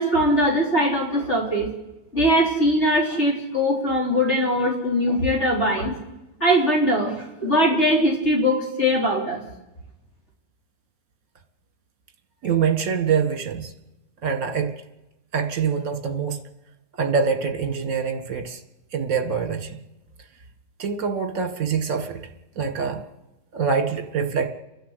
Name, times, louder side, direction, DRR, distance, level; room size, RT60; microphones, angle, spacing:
voice 1, 0.0-1.7 2.1-5.9 6.4-9.4, equal, 40° left, -2 dB, 4.2 m, -21 dB
voice 2, 12.4-13.7 14.2-14.8 15.3-16.4 17.0-18.6 18.9-19.8 20.8-22.3 22.6-23.0 23.5-24.5, right 6 dB, 55° right, 7 dB, 2.0 m, -24 dB
30.0 x 11.5 x 8.1 m, 0.99 s
omnidirectional pair, 1.9 m